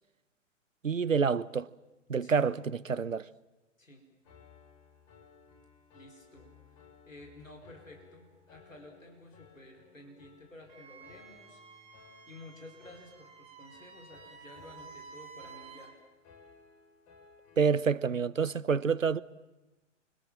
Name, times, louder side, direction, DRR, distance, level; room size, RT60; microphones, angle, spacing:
voice 1, 0.8-1.7 2.1-3.3 17.6-19.2, right 6 dB, 85° right, 1.0 m, -28 dB
Piano, 4.2-18.0, left 5 dB, 35° left, 6.2 m, -59 dB
voice 2, 5.9-16.0, left 2 dB, 90° left, 5.0 m, -53 dB
Wind instrument woodwind instrument, 10.7-16.0, right 5 dB, 15° right, 2.9 m, -52 dB
29.5 x 25.0 x 7.5 m
figure-of-eight pair, 115°, 38 cm